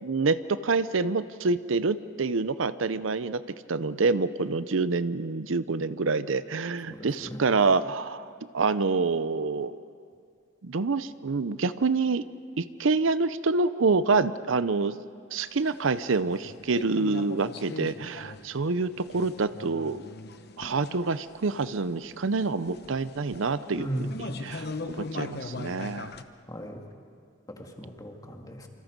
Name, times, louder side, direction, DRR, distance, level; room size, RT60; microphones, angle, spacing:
voice 1, 0.0-3.4 3.7-8.3 8.5-9.8 10.6-12.2 12.6-14.9 15.3-20.0 20.6-24.1 24.4-26.1, right 4 dB, 75° right, 14 dB, 0.7 m, -27 dB
voice 2, 6.9-7.4 23.7-24.2 26.5-26.8 27.5-28.7, right 1 dB, 20° left, 2 dB, 2.2 m, -36 dB
sound 1, 15.5-26.2, left 3 dB, 55° left, 1.0 m, -41 dB
27.5 x 26.0 x 5.3 m, 2.3 s
head